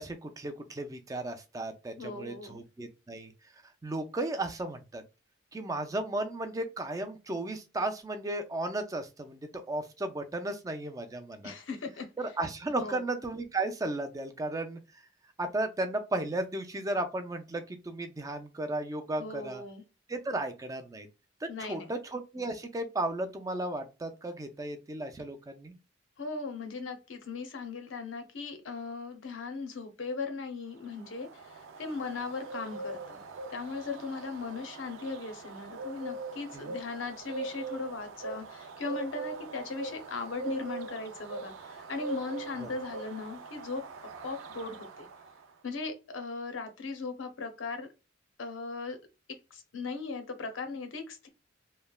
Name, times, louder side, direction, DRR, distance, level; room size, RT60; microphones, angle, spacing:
voice 1, 0.0-3.3 3.8-5.0 5.5-11.5 12.2-14.8 15.4-19.6 20.1-21.1 21.4-25.7 36.5-36.8 42.6-42.7, right 2 dB, 20° right, 0.3 m, -35 dB
voice 2, 2.0-2.6 11.4-12.1 12.7-13.0 19.2-19.8 21.5-21.9 26.2-33.2 33.5-45.1 45.6-47.9 48.4-49.0 49.5-51.3, left 4 dB, 85° left, 0.6 m, -38 dB
Bird, 30.8-45.5, right 3 dB, 85° right, 0.4 m, -42 dB
3.1 x 2.1 x 2.2 m
head